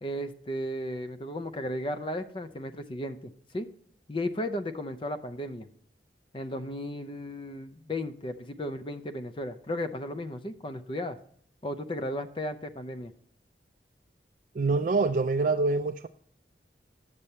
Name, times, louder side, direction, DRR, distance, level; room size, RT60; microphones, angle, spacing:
voice 1, 0.0-3.7 4.1-5.7 6.3-11.2 11.6-13.1, left 1 dB, 30° left, 10 dB, 0.5 m, -35 dB
voice 2, 14.6-16.1, right 3 dB, 45° right, 8 dB, 0.3 m, -25 dB
8.8 x 6.7 x 4.2 m, 0.64 s
head